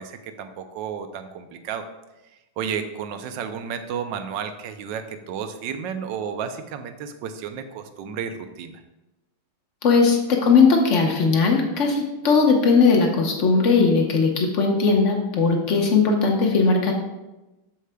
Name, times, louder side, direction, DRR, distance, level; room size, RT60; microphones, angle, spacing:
voice 1, 0.0-1.8 2.6-8.8, right 7 dB, 70° right, 8 dB, 1.2 m, -32 dB
voice 2, 9.8-16.9, left 4 dB, 45° left, 2 dB, 1.1 m, -18 dB
13.5 x 4.8 x 2.2 m, 1.0 s
omnidirectional pair, 2.3 m